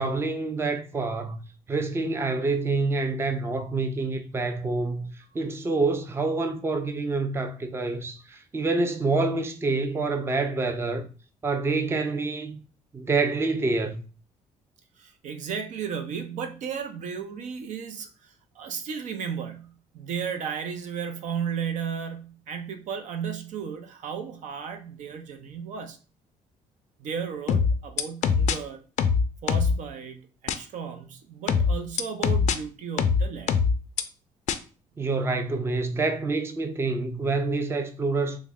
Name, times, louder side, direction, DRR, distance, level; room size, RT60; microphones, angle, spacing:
voice 1, 0.0-1.4 1.7-11.1 11.4-12.6 12.9-14.0 35.0-38.4, right 3 dB, 20° right, 0.4 m, -27 dB
voice 2, 15.0-18.1 18.6-26.0 27.0-28.8 29.4-33.5, right 7 dB, 70° right, 0.6 m, -34 dB
sound 1, 27.5-28.6 29.0-29.8 30.5-30.6 31.5-32.6 33.0-34.0 34.5-34.6, left 6 dB, 65° left, 0.4 m, -22 dB
3.4 x 2.1 x 3.5 m
cardioid pair, 100°, 13 cm